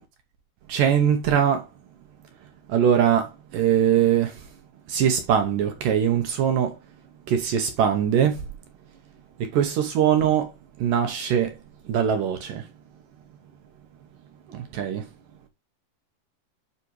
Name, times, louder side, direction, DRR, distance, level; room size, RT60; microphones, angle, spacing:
voice 1, 0.7-1.7 2.7-4.5 4.9-6.8 7.3-8.4 9.5-11.6 11.9-12.7 14.5-15.1, right 9 dB, 70° right, 2.1 m, -22 dB
9.7 x 4.9 x 3.1 m
omnidirectional pair, 4.9 m